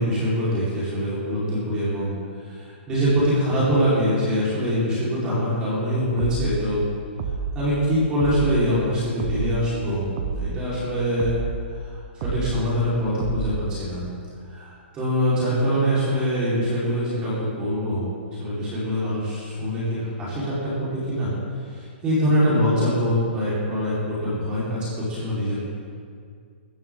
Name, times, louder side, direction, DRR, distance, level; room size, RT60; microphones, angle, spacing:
voice 1, 0.0-2.1 2.4-6.8 7.5-10.0 10.3-11.4 11.8-14.1 14.5-21.3 21.7-24.8 25.1-25.6, equal, 15° right, -10 dB, 4.6 m, -24 dB
sound 1, 6.2-6.6 7.2-7.6 8.2-8.6 9.2-9.6 10.2-10.6 11.2-11.6 12.2-12.6 13.2-13.6, right 6 dB, 35° right, 1.2 m, -28 dB
19.5 x 14.0 x 3.9 m, 2.2 s
hypercardioid pair, 170°, 6 cm